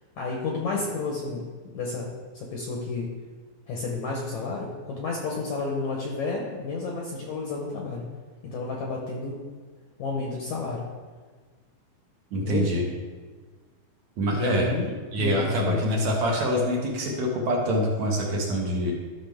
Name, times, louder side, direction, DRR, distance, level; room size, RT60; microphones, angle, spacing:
voice 1, 0.2-3.1 3.7-8.0 8.4-9.4 10.0-10.8 12.4-12.8 14.3-15.8, left 3 dB, 70° left, -1 dB, 1.9 m, -31 dB
voice 2, 12.3-12.8 14.2-14.7 15.1-18.9, equal, 60° right, -1 dB, 2.1 m, -25 dB
13.5 x 6.1 x 3.6 m, 1.5 s
omnidirectional pair, 4.4 m